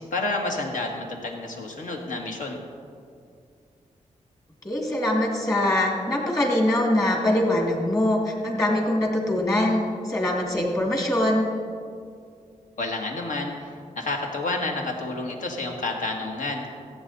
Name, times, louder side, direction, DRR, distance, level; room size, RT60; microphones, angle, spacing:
voice 1, 0.0-2.6 12.8-13.5 13.9-16.6, left 2 dB, 75° left, 1 dB, 1.7 m, -29 dB
voice 2, 4.6-11.5, left 1 dB, 25° left, 0 dB, 2.1 m, -23 dB
15.5 x 8.3 x 4.1 m, 2.3 s
wide cardioid pair, 110°, 13 cm